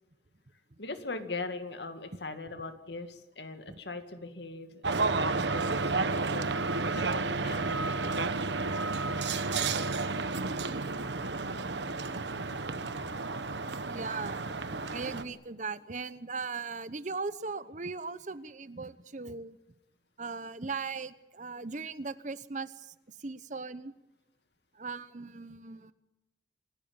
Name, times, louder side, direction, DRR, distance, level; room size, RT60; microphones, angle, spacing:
voice 1, 0.8-4.8 5.2-6.5 6.9-9.2, left 3 dB, 70° left, 8 dB, 2.2 m, -41 dB
sound 1, 4.8-15.2, right 3 dB, 75° right, 1.2 m, -31 dB
voice 2, 13.8-14.4 14.9-19.6 20.2-22.9 23.2-23.9 24.8-25.9, right 4 dB, 40° right, 15 dB, 0.9 m, -38 dB
27.5 x 16.5 x 8.8 m, 0.99 s
head